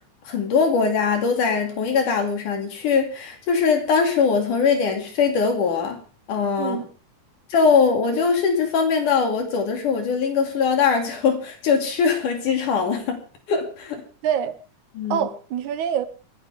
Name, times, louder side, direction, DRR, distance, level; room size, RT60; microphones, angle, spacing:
voice 1, 0.3-6.0 6.3-6.8 7.5-13.2 13.5-14.0 15.0-15.3, left 5 dB, 80° left, 4.2 m, -21 dB
voice 2, 14.2-14.5 15.1-16.1, right 9 dB, 75° right, 2.3 m, -25 dB
30.0 x 10.5 x 3.6 m
omnidirectional pair, 3.6 m